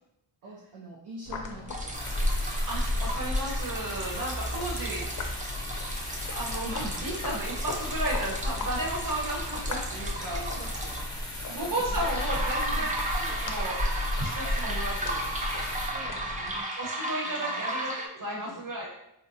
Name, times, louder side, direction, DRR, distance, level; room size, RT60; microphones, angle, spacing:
voice 1, 0.4-2.3 10.1-13.0 15.8-16.8 17.2-17.6 18.3-18.6, right 1 dB, 65° right, -4 dB, 0.6 m, -46 dB
sound 1, 1.3-16.6, left 3 dB, 45° left, 0.4 m, -41 dB
sound 2, 1.7-11.0 12.0-18.1, right 1 dB, 20° right, 0.4 m, -35 dB
sound 3, 1.9-15.9, left 1 dB, 10° left, 0.8 m, -34 dB
voice 2, 2.7-5.5 6.3-10.4 11.5-12.9 13.1-13.8 14.1-15.2 16.8-18.9, right 1 dB, 45° right, -4 dB, 1.0 m, -34 dB
3.9 x 2.2 x 2.7 m, 0.83 s
wide cardioid pair, 110°, 44 cm